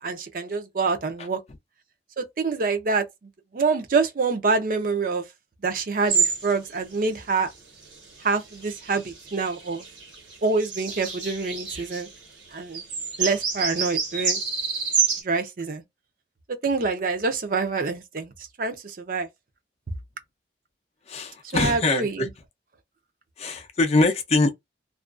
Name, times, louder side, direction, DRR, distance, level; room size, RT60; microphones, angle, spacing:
voice 1, 0.0-1.4 2.2-3.1 3.5-5.2 5.6-7.5 8.2-9.8 10.4-12.1 12.5-12.8 13.2-14.4 15.2-15.8 16.5-18.3 18.6-19.3 21.5-22.3, right 4 dB, 50° right, 0.5 m, -26 dB
sound 1, 6.1-6.5 6.9-7.0 7.7-12.1 12.5-12.6 12.7-15.2, right 6 dB, 80° right, 1.2 m, -28 dB
voice 2, 21.1-22.3 23.4-24.5, left 3 dB, 35° left, 0.4 m, -23 dB
2.4 x 2.2 x 2.4 m
head